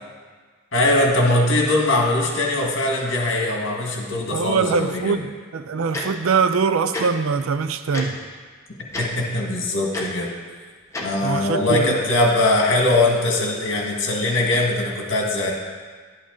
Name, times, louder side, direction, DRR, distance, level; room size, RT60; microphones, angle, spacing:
voice 1, 0.7-5.2 9.0-10.3 11.0-15.5, left 2 dB, 60° left, 0 dB, 1.7 m, -21 dB
voice 2, 4.3-5.3 5.5-8.1 11.2-11.9, right 5 dB, 75° right, 11 dB, 0.5 m, -22 dB
Tick-tock, 5.9-6.0 6.9-7.0 7.9-8.1 8.9-9.1 9.9-10.0 10.9-11.0, left 2 dB, 15° left, 1.1 m, -28 dB
11.0 x 8.5 x 3.8 m, 1.5 s
head